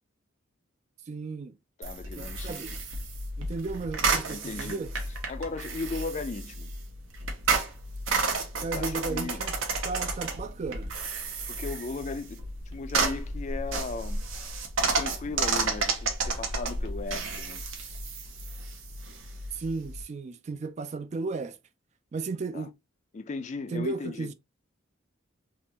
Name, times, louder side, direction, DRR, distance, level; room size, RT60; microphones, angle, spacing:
voice 1, 1.1-1.6 2.2-2.8 3.4-4.9 8.6-9.5 9.8-10.9 19.5-21.6 22.1-22.7 23.7-24.3, right 3 dB, 35° right, 0.3 m, -34 dB
voice 2, 1.8-2.8 4.3-4.8 5.3-6.7 8.7-9.4 11.5-14.2 14.8-17.6 22.5-22.7 23.1-24.3, left 3 dB, 35° left, 0.4 m, -37 dB
sound 1, 1.8-20.0, right 3 dB, 80° right, 1.0 m, -32 dB
3.6 x 2.4 x 2.8 m
head